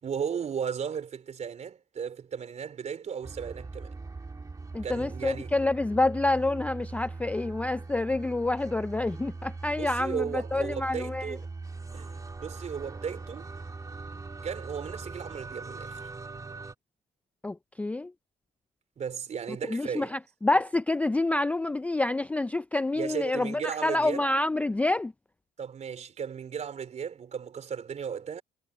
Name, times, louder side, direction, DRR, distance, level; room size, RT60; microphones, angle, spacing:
voice 1, 0.0-3.9 4.8-5.5 9.8-11.4 11.9-13.5 14.4-16.0 19.0-20.1 22.9-24.3 25.6-28.4, right 7 dB, 40° right, 4.3 m, -35 dB
sound 1, 3.2-16.7, right 3 dB, 20° right, 2.2 m, -41 dB
voice 2, 4.7-11.4 17.4-18.1 19.6-25.1, left 2 dB, 10° left, 0.3 m, -28 dB
cardioid pair, 110°, 17 cm